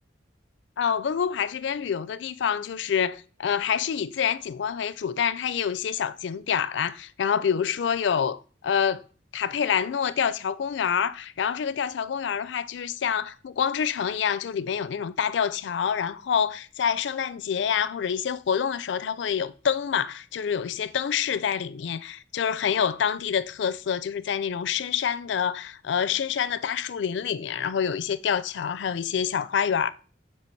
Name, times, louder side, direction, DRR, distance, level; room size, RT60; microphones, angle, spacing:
voice 1, 0.8-9.0 9.3-29.9, left 7 dB, 75° left, 0.4 m, -27 dB
7.5 x 3.3 x 4.5 m
head